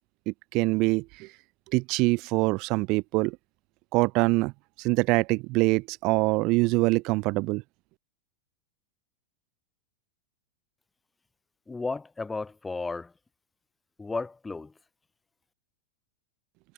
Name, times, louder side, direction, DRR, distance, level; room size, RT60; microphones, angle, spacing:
voice 1, 0.3-1.3 1.7-3.4 3.9-4.5 4.8-7.6, right 24 dB, 40° right, 2.4 m, -24 dB
voice 2, 11.7-13.1 14.0-14.7, left 3 dB, 10° left, 7.0 m, -33 dB
figure-of-eight pair, 90°, 0 cm